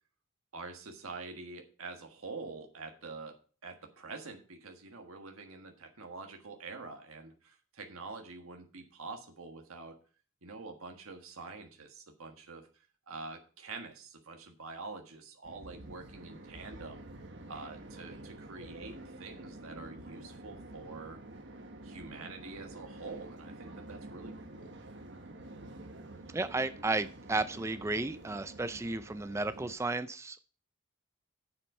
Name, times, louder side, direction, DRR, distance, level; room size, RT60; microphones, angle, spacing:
voice 1, 0.5-3.4 3.6-10.0 10.4-12.7 13.1-17.0 17.5-21.2 21.8-24.8, right 3 dB, 90° right, 3 dB, 1.5 m, -46 dB
sound 1, 15.4-29.7, right 1 dB, 60° right, 1.4 m, -48 dB
voice 2, 26.3-30.4, right 2 dB, 15° right, 12 dB, 0.3 m, -33 dB
8.6 x 7.5 x 5.4 m, 0.39 s
head